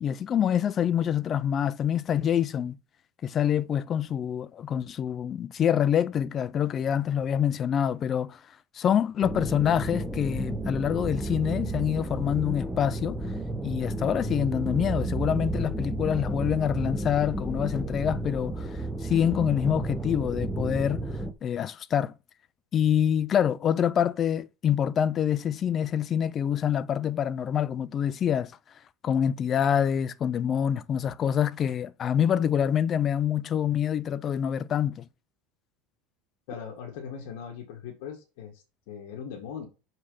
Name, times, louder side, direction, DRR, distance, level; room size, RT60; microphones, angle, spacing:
voice 1, 0.0-2.8 3.2-8.4 8.7-13.2 13.6-21.1 21.4-22.1 22.7-28.5 29.0-35.1, left 9 dB, 25° left, 0.3 m, -26 dB
sound 1, 9.2-21.3, right 2 dB, 5° right, 0.7 m, -32 dB
voice 2, 36.5-39.7, left 7 dB, 60° left, 1.9 m, -40 dB
6.5 x 6.3 x 5.7 m
cardioid pair, 175°, 0 cm